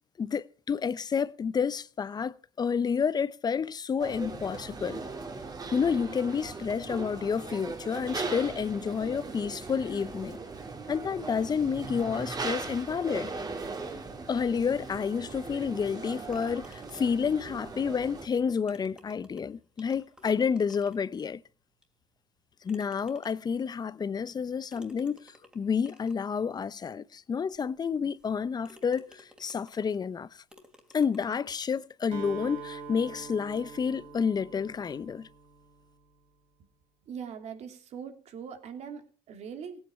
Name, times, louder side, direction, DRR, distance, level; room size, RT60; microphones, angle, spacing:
voice 1, 0.2-5.0 5.7-10.4 10.9-13.3 14.3-21.4 22.6-30.4 30.9-35.3, left 6 dB, 35° left, 0.7 m, -30 dB
sound 1, 4.0-18.3, right 3 dB, 30° right, 2.7 m, -39 dB
sound 2, 16.3-17.3 18.3-18.4 18.7-21.2 21.8-21.9 22.7-23.6 24.7-26.2 26.9-27.0 27.5-27.6 28.2-28.4 28.6-30.0 30.5-31.6, left 1 dB, 5° right, 3.0 m, -55 dB
Acoustic guitar, 32.1-36.0, right 5 dB, 80° right, 3.4 m, -44 dB
voice 2, 37.0-39.9, right 7 dB, 60° right, 2.8 m, -41 dB
17.5 x 9.0 x 5.8 m
supercardioid pair, 80°, 12 cm